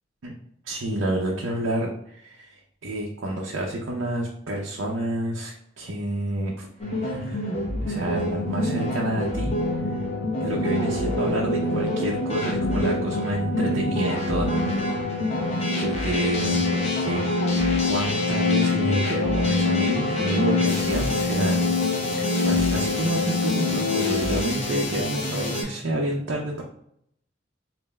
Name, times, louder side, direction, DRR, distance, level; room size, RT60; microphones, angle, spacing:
voice 1, 0.6-6.7 7.0-9.6 9.8-10.0 10.4-14.8 15.0-15.2 15.8-21.6 22.2-26.6, right 1 dB, 85° right, -2 dB, 0.6 m, -29 dB
sound 1, 6.8-25.6, equal, 35° left, 0.9 m, -29 dB
sound 2, 8.4-24.4, left 3 dB, 75° left, 0.6 m, -26 dB
5.2 x 2.6 x 2.2 m, 0.72 s
head